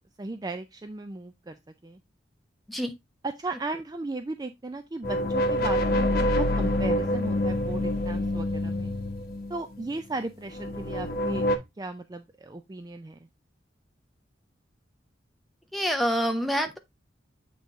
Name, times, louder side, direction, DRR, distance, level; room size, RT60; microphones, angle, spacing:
voice 1, 0.2-2.0 3.2-8.9 9.5-13.2, right 2 dB, 20° right, 0.4 m, -36 dB
sound 1, 5.0-10.0 10.5-11.6, left 1 dB, 50° left, 1.0 m, -26 dB
voice 2, 15.7-16.8, equal, ahead, 0.7 m, -26 dB
7.2 x 3.9 x 3.5 m
head